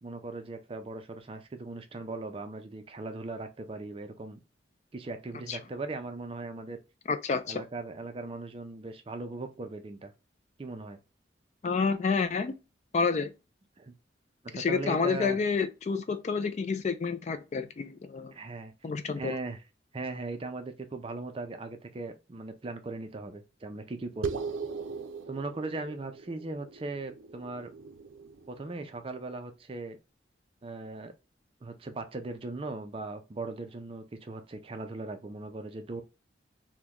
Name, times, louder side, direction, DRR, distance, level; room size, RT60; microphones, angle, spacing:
voice 1, 0.0-4.4 4.9-6.8 7.5-10.1 10.6-11.0 13.8-13.9 14.4-15.4 18.3-18.7 19.2-19.6 19.9-24.4 25.3-27.7 28.5-30.0 30.6-31.1 31.6-36.0, right 3 dB, 30° right, 0.4 m, -39 dB
voice 2, 7.1-7.6 11.6-12.5 12.9-13.3 14.5-18.3 18.8-19.3, left 5 dB, 35° left, 0.3 m, -29 dB
sound 1, 24.2-29.0, right 5 dB, 90° right, 0.4 m, -39 dB
3.0 x 2.1 x 3.5 m
head